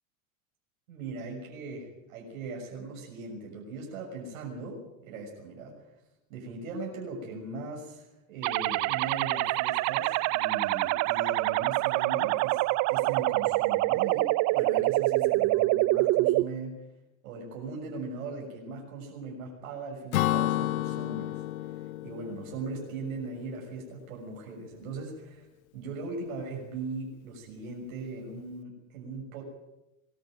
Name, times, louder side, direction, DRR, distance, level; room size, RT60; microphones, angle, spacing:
voice 1, 0.9-5.8 6.3-16.8 17.2-25.5 25.7-29.4, right 3 dB, 70° right, 0 dB, 6.8 m, -39 dB
sound 1, 8.4-16.4, right 20 dB, 40° right, 0.6 m, -26 dB
Acoustic guitar / Strum, 20.1-23.8, left 14 dB, 80° left, 0.8 m, -31 dB
22.0 x 13.5 x 9.3 m, 0.94 s
hypercardioid pair, 95°, 41 cm